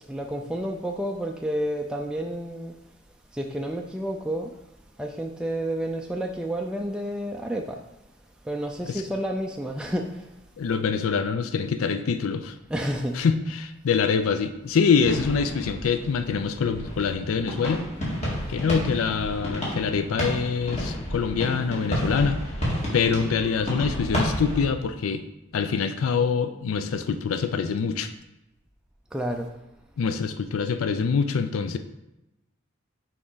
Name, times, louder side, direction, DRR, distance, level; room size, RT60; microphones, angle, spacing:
voice 1, 0.1-2.7 3.3-4.5 5.0-7.8 8.4-10.3 12.7-13.2 29.1-29.5, right 1 dB, 5° right, 1 dB, 0.3 m, -30 dB
voice 2, 10.6-12.5 13.2-17.9 18.5-22.4 22.9-25.2 25.5-28.1 30.0-31.8, left 5 dB, 85° left, 9 dB, 0.4 m, -25 dB
sound 1, 15.0-24.7, equal, 35° left, 1.9 m, -31 dB
6.2 x 4.6 x 3.9 m, 0.94 s
head